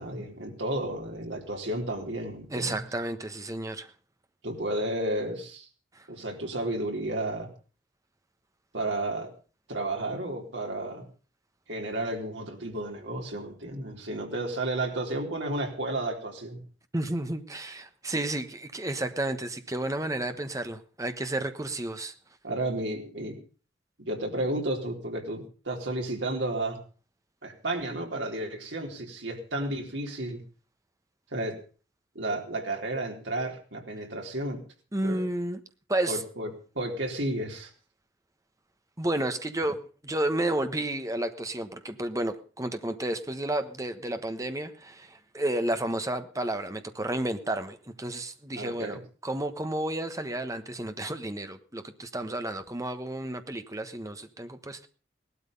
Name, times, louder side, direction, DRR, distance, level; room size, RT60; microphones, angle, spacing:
voice 1, 0.0-2.8 4.4-5.7 6.1-7.5 8.7-9.3 9.7-11.0 11.7-16.6 22.4-23.4 24.0-26.8 27.4-30.4 31.3-31.6 32.1-34.6 35.0-35.2 36.1-36.5 36.7-37.7 48.6-49.0, right 1 dB, 75° right, 2 dB, 4.0 m, -32 dB
voice 2, 2.5-3.9 16.9-22.1 34.9-35.6 35.9-36.2 39.0-54.9, right 1 dB, 15° right, 9 dB, 1.2 m, -31 dB
18.0 x 12.5 x 5.4 m, 0.38 s
head